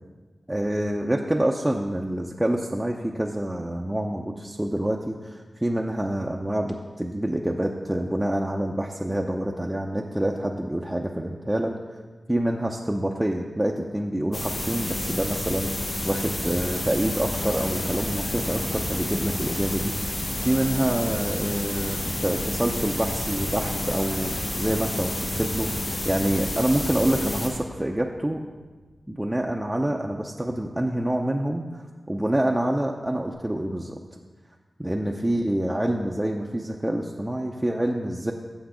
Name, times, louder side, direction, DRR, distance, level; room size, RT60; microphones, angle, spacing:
voice 1, 0.5-12.0 12.3-28.4 29.1-34.0 34.8-38.3, right 1 dB, 10° right, 0 dB, 0.5 m, -27 dB
sound 1, 14.3-27.5, left 1 dB, 65° left, 1.9 m, -30 dB
sound 2, 17.1-29.4 29.9-30.0 33.3-33.4, left 1 dB, 45° left, 2.5 m, -40 dB
8.1 x 7.1 x 5.0 m, 1.3 s
wide cardioid pair, 90°, 0 cm